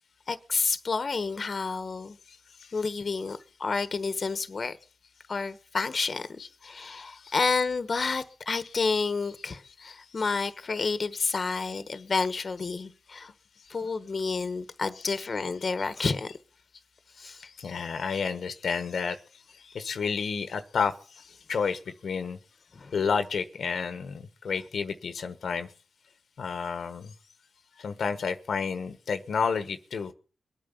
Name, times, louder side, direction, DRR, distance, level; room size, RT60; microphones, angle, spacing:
voice 1, 0.3-2.2 2.7-4.8 5.3-13.3 13.7-16.3 17.2-17.5 22.7-22.9, left 4 dB, 50° left, 1.2 m, -30 dB
voice 2, 17.6-19.2 19.6-22.4 22.9-25.7 26.4-27.1 27.8-30.1, left 5 dB, 75° left, 1.2 m, -31 dB
22.0 x 9.0 x 7.1 m
cardioid pair, 70°, 0 cm